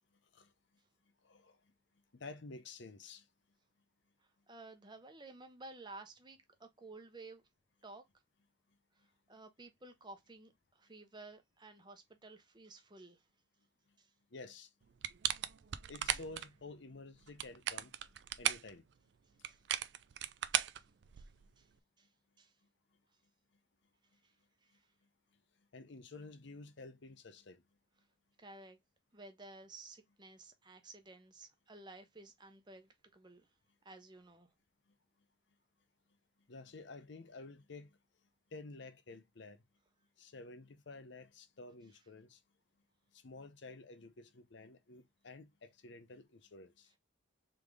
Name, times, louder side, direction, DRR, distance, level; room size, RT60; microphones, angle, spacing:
voice 1, 1.2-1.6 2.1-3.2 14.3-14.7 15.9-17.9 18.4-18.8 25.7-27.6 36.5-38.0 38.5-39.6 40.2-42.4 43.1-46.9, left 3 dB, 65° left, 0.7 m, -51 dB
voice 2, 4.5-7.4 7.8-8.0 9.0-13.2 14.0-14.1 19.5-19.6 20.8-20.9 21.2-21.3 21.6-21.7 22.0-22.1 22.4-22.5 24.2-24.3 24.6-24.9 28.4-28.8 29.1-33.5 33.8-34.5, right 2 dB, 20° right, 0.8 m, -54 dB
sound 1, 15.0-16.5 17.2-18.7 19.4-21.5, right 11 dB, 60° right, 0.4 m, -36 dB
3.7 x 3.5 x 3.2 m
head